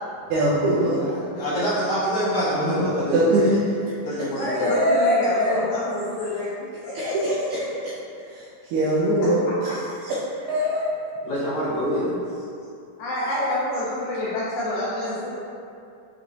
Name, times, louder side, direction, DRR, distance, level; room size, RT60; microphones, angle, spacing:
voice 1, 0.3-1.0 2.5-3.6 4.6-5.6 7.0-7.6 8.3-10.2 10.5-10.8, right 1 dB, 80° right, -7 dB, 1.8 m, -22 dB
voice 2, 0.9-3.5 3.9-4.7 11.2-12.2, equal, 50° left, -11 dB, 1.6 m, -26 dB
voice 3, 4.3-7.7 13.0-15.4, left 1 dB, 80° left, -7 dB, 1.9 m, -27 dB
5.8 x 3.0 x 2.5 m, 2.5 s
omnidirectional pair, 3.9 m